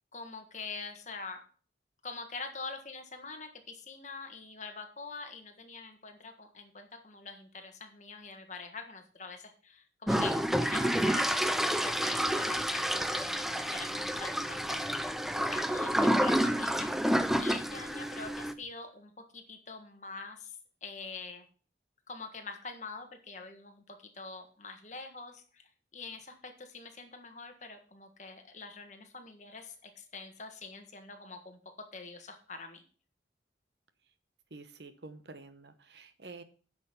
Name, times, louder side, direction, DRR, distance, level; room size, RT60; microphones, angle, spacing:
voice 1, 0.1-1.4 2.0-10.3 10.6-15.0 15.5-21.4 22.1-31.6 31.9-32.8, left 4 dB, 40° left, 5 dB, 1.5 m, -45 dB
sound 1, 10.1-18.5, equal, ahead, 0.4 m, -29 dB
voice 2, 34.5-36.4, right 3 dB, 70° right, 11 dB, 1.0 m, -49 dB
9.6 x 6.1 x 5.9 m, 0.42 s
head